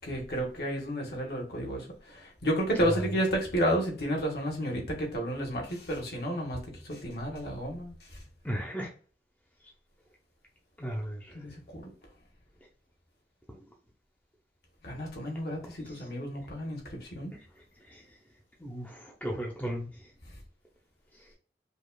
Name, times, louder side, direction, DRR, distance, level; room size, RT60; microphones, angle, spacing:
voice 1, 0.0-7.9 11.3-11.9 14.8-17.3, equal, 60° left, 1.4 m, -31 dB
voice 2, 8.4-8.9 10.8-11.4 15.8-16.1 17.3-17.4 17.9-18.0 18.6-20.1, equal, 10° left, 0.7 m, -36 dB
5.1 x 2.4 x 2.3 m
head